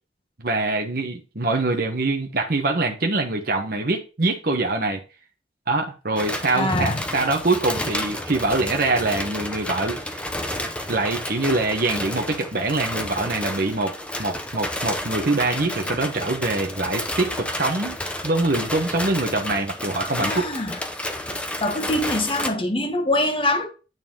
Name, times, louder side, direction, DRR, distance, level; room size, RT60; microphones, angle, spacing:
voice 1, 0.4-5.0 5.7-10.3 10.9-13.9 14.2-20.5, right 2 dB, 55° right, 1.1 m, -24 dB
sound 1, 6.2-22.5, left 1 dB, 5° left, 0.7 m, -31 dB
voice 2, 6.5-7.0 20.2-20.8 21.6-23.7, left 1 dB, 30° left, 1.2 m, -24 dB
9.1 x 4.1 x 3.7 m
head